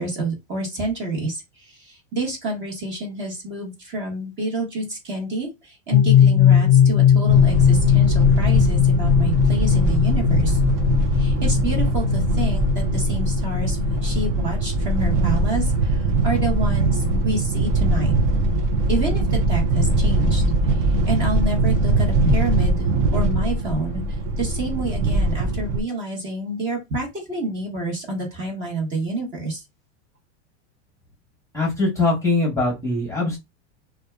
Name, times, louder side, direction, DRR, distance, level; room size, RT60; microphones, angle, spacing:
voice 1, 0.0-10.6 11.1-18.1 18.9-20.4 20.7-22.9 23.1-24.0 24.4-29.6, right 2 dB, 30° right, 1.0 m, -28 dB
sound 1, 5.9-14.3, left 9 dB, 30° left, 0.5 m, -19 dB
sound 2, 7.3-25.8, right 2 dB, 50° right, 0.6 m, -21 dB
voice 2, 31.5-33.4, left 3 dB, 10° left, 0.9 m, -22 dB
2.7 x 2.3 x 2.2 m
supercardioid pair, 145°, 36 cm